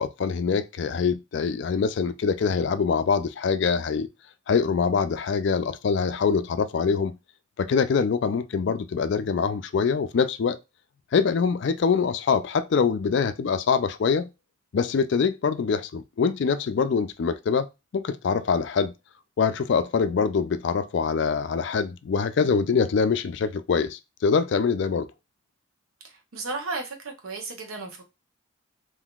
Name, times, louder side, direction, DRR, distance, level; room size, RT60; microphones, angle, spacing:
voice 1, 0.0-4.1 4.5-7.2 7.6-10.6 11.1-14.3 14.7-18.9 19.4-25.1, left 5 dB, 55° left, 0.3 m, -24 dB
voice 2, 26.3-28.0, right 3 dB, 85° right, 0.9 m, -34 dB
3.7 x 2.6 x 2.3 m
head